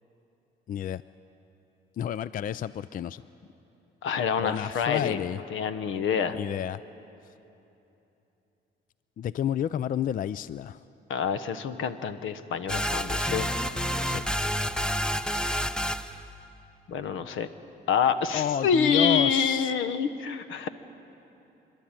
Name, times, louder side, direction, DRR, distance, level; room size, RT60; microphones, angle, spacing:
voice 1, 0.7-1.0 2.0-3.2 4.4-5.4 6.3-6.8 9.2-10.8 14.1-14.2 18.3-19.7, left 9 dB, 45° left, 17 dB, 0.4 m, -30 dB
voice 2, 4.0-5.2 5.5-6.4 11.1-13.5 16.9-17.5 17.9-20.7, left 6 dB, 80° left, 12 dB, 1.0 m, -27 dB
sound 1, 12.7-16.2, equal, 5° left, 0.7 m, -29 dB
26.0 x 12.0 x 9.0 m, 3.0 s
cardioid pair, 90°, 20 cm